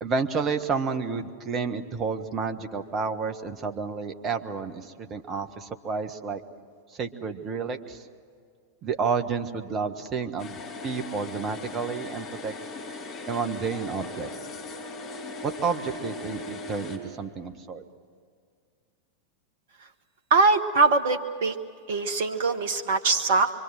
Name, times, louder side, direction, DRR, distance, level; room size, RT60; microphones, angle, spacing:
voice 1, 0.0-6.4 6.9-8.0 8.8-12.6 13.3-14.3 15.4-17.8, right 5 dB, 30° right, 7 dB, 1.5 m, -30 dB
sound 1, 10.4-17.0, left 3 dB, 35° left, 4.8 m, -38 dB
voice 2, 20.3-21.5 21.9-23.5, right 3 dB, 55° right, 9 dB, 1.1 m, -22 dB
26.0 x 24.0 x 7.6 m, 2.1 s
figure-of-eight pair, 90°, 0 cm